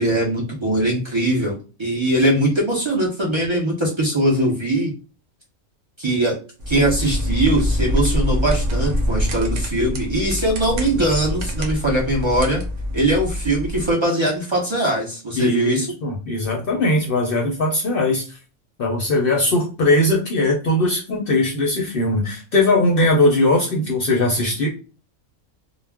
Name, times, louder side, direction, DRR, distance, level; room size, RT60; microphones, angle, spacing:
voice 1, 0.0-4.9 6.0-6.4 6.7-12.6 12.9-15.9, right 1 dB, 50° right, -3 dB, 0.3 m, -21 dB
sound 1, 6.6-13.9, left 1 dB, 70° right, 0.9 m, -24 dB
voice 2, 15.4-18.4 18.8-24.7, left 2 dB, 60° left, 0 dB, 0.6 m, -20 dB
2.3 x 2.0 x 3.4 m, 0.35 s
omnidirectional pair, 1.4 m